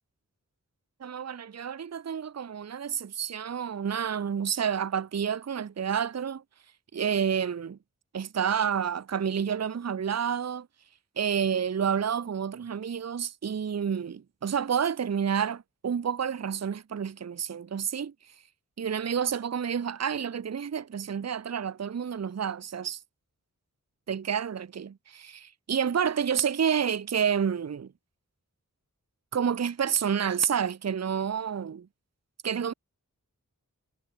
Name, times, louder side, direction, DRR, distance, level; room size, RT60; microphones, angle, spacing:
voice 1, 1.0-6.4 6.9-7.8 8.1-10.7 11.2-18.4 18.8-23.0 24.1-27.9 29.3-31.9 32.4-32.7, right 7 dB, 50° right, 0.6 m, -29 dB
wide cardioid pair, 45°, 34 cm